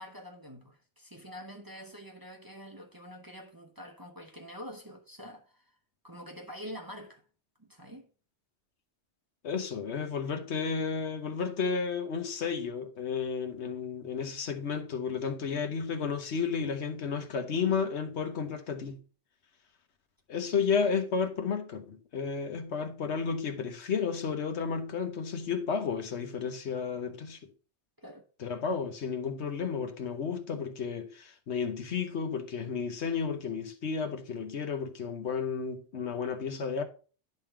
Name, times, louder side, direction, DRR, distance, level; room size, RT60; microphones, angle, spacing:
voice 1, 0.0-5.6 6.0-7.2 7.6-8.1 28.0-28.2, equal, 20° right, 0.9 m, -46 dB
voice 2, 9.4-19.0 20.3-27.4 28.4-36.8, left 6 dB, 70° left, 1.2 m, -32 dB
10.5 x 3.8 x 4.4 m
omnidirectional pair, 1.2 m